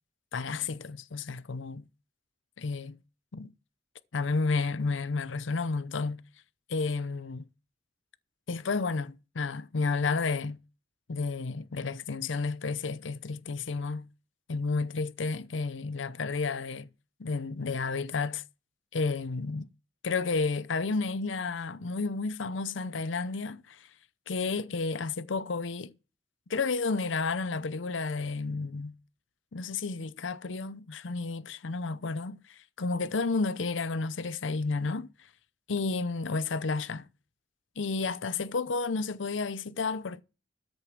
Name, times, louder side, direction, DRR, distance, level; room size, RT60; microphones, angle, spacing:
voice 1, 0.3-1.9 2.6-3.0 3.3-3.5 4.1-6.2 6.7-7.4 8.5-10.6 11.1-14.1 14.5-16.9 17.2-18.4 18.9-19.7 20.0-23.9 24.3-25.9 26.5-29.0 29.5-35.1 35.7-37.1 37.8-40.2, left 4 dB, 70° left, 0.7 m, -31 dB
13.5 x 6.7 x 6.0 m
head